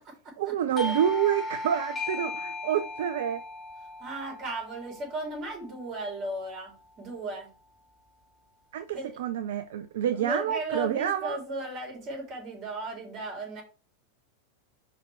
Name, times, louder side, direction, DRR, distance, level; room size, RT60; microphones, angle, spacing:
voice 1, 0.4-3.4 8.7-11.4, right 10 dB, 55° right, 0.5 m, -28 dB
Doorbell, 0.8-6.0, left 2 dB, 25° left, 1.3 m, -37 dB
voice 2, 4.0-7.5 8.9-9.2 10.1-13.6, right 1 dB, 35° right, 3.8 m, -36 dB
5.0 x 4.8 x 4.9 m
figure-of-eight pair, 90°, 0 cm